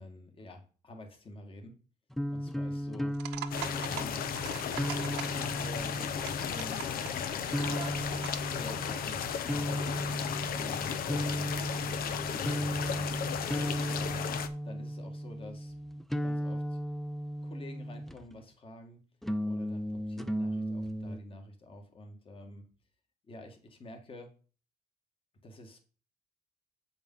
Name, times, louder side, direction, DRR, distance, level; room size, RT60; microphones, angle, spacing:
voice 1, 0.0-1.8 2.3-3.2 3.9-8.1 8.5-9.2 9.5-9.9 10.6-13.2 13.8-14.3 14.6-15.7 16.2-16.8 17.4-19.0 19.4-22.6 23.3-24.3 25.4-25.8, left 1 dB, 30° left, 4 dB, 2.0 m, -48 dB
sound 1, 2.1-18.4 19.2-21.2, equal, ahead, 0.5 m, -36 dB
sound 2, 3.1-8.5, right 13 dB, 85° right, 0.8 m, -44 dB
sound 3, 3.5-14.5, left 8 dB, 60° left, 0.9 m, -35 dB
7.9 x 5.2 x 5.6 m, 0.37 s
cardioid pair, 110°, 17 cm